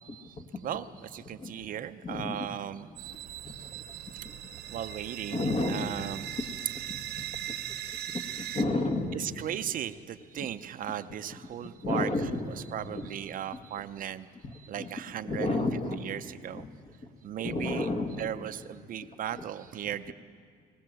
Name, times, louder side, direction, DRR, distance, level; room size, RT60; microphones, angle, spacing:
voice 1, 0.0-3.1 3.5-3.6 3.9-4.0 4.7-6.4 9.1-16.7 17.2-20.1, right 10 dB, 55° right, 11 dB, 0.7 m, -37 dB
voice 2, 2.0-2.4 3.4-3.5 5.3-5.9 6.9-7.0 8.1-9.2 11.8-12.4 12.9-13.1 14.4-14.5 14.8-14.9 15.3-16.0 16.5-16.6 17.4-18.2, left 2 dB, 40° left, 4 dB, 2.0 m, -30 dB
sound 1, 3.0-8.6, right 11 dB, 75° right, 1.0 m, -39 dB
21.5 x 19.0 x 7.6 m, 2.1 s
cardioid pair, 110°, 17 cm